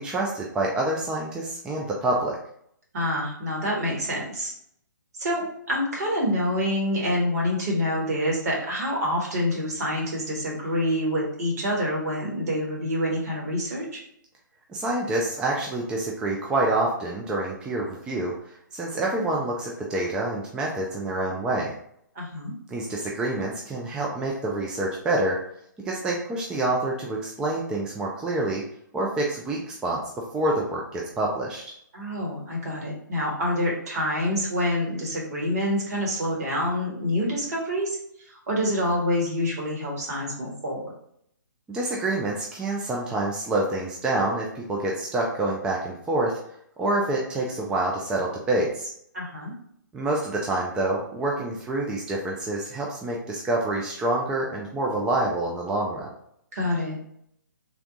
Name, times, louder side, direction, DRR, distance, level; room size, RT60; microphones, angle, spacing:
voice 1, 0.0-2.4 14.7-21.7 22.7-25.4 25.8-28.6 28.9-30.0 30.3-31.7 41.7-46.4 46.8-48.9 49.9-56.1, right 2 dB, 5° right, -2 dB, 0.3 m, -27 dB
voice 2, 2.9-4.5 5.2-14.0 22.1-22.5 31.9-38.0 38.3-40.9 49.1-49.5 56.5-57.0, equal, 55° right, -2 dB, 1.4 m, -27 dB
3.5 x 2.3 x 3.8 m, 0.69 s
figure-of-eight pair, 135°, 11 cm